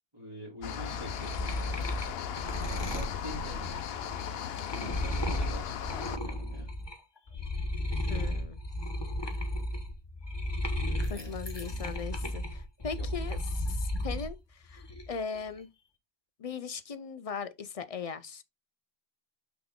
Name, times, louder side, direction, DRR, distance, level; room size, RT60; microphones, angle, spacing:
voice 1, 0.1-1.9 2.8-3.8 4.7-5.8 6.0-6.7 11.1-11.3 11.6-11.8 13.0-13.4, equal, 30° right, 3.2 m, -45 dB
sound 1, 0.6-6.2, left 8 dB, 75° left, 0.8 m, -37 dB
sound 2, 0.7-7.0 7.3-14.3 14.7-15.4, left 1 dB, 25° left, 1.1 m, -34 dB
voice 2, 8.1-8.6 11.1-15.7 16.4-18.4, left 6 dB, 45° left, 0.6 m, -39 dB
5.8 x 4.8 x 3.6 m
omnidirectional pair, 1.1 m